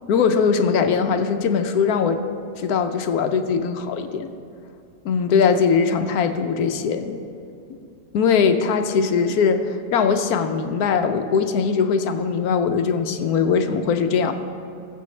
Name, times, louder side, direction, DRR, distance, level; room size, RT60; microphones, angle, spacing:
voice 1, 0.1-2.2 2.6-4.3 5.0-7.2 8.1-14.3, left 6 dB, 70° left, 8 dB, 1.1 m, -20 dB
19.5 x 7.7 x 3.2 m, 2.5 s
omnidirectional pair, 1.8 m